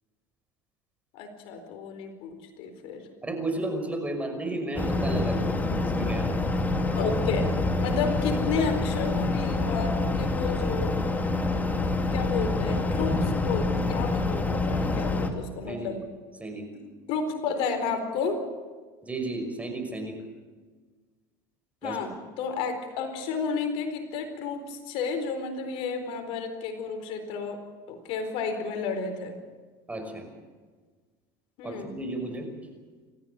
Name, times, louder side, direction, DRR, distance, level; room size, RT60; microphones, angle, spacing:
voice 1, 1.1-3.1 6.9-7.5 7.8-10.9 12.1-16.0 16.7-16.8 17.1-18.4 21.8-22.1 22.4-27.6 27.9-29.4 31.6-31.9, left 5 dB, 65° left, 7 dB, 4.3 m, -32 dB
voice 2, 3.2-6.4 6.7-6.9 14.9-15.2 15.7-15.9 16.4-16.6 19.0-20.2 21.8-22.0 29.9-30.3 31.6-32.5, right 2 dB, 15° right, 5 dB, 5.7 m, -33 dB
sound 1, 4.8-15.3, left 2 dB, 15° left, 2.6 m, -26 dB
29.0 x 14.5 x 8.4 m, 1.4 s
supercardioid pair, 105°, 10 cm